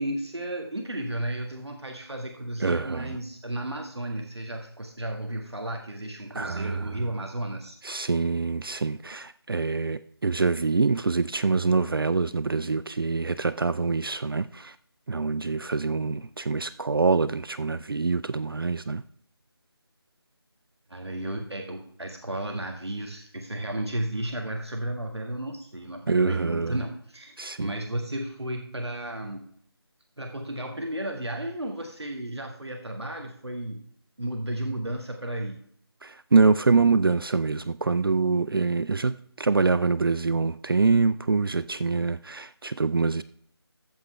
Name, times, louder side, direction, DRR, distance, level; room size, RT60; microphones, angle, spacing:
voice 1, 0.0-7.8 8.8-8.9 20.9-29.4 30.2-33.8 34.2-35.6, right 1 dB, 80° right, 1.7 m, -33 dB
voice 2, 2.6-3.2 6.3-7.0 7.8-14.8 15.1-19.0 26.1-26.8 27.4-27.7 36.0-43.2, right 4 dB, 60° right, 0.4 m, -25 dB
14.5 x 8.0 x 3.3 m
figure-of-eight pair, 165°, 14 cm